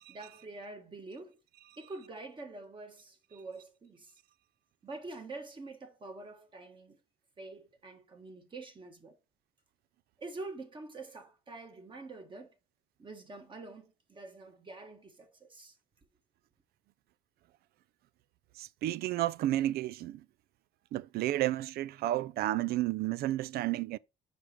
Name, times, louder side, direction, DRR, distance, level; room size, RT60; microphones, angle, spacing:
voice 1, 0.0-1.4 1.8-4.2 4.8-7.0 7.4-9.2 10.2-12.5 13.0-15.8, right 3 dB, 30° right, 1.5 m, -46 dB
voice 2, 18.6-20.2 20.9-24.0, right 14 dB, 65° right, 0.4 m, -31 dB
6.0 x 5.1 x 4.4 m
cardioid pair, 110°, 17 cm